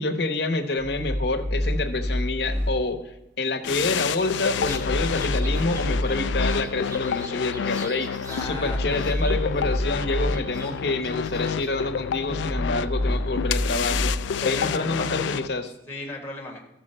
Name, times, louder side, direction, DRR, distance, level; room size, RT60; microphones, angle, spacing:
voice 1, 0.0-8.1 8.4-14.1 14.4-15.7, left 2 dB, 65° left, 8 dB, 0.9 m, -27 dB
sound 1, 0.8-2.7 4.6-6.5 8.4-10.3 12.2-14.1, left 1 dB, 55° right, 3.2 m, -27 dB
sound 2, 3.6-15.5, left 7 dB, 85° left, 0.3 m, -29 dB
sound 3, 3.7-8.5 8.8-11.7, right 1 dB, 20° right, 1.2 m, -44 dB
voice 2, 8.3-8.8 14.4-15.2 15.9-16.6, left 2 dB, 10° left, 0 dB, 1.6 m, -35 dB
13.5 x 5.9 x 4.3 m, 0.89 s
head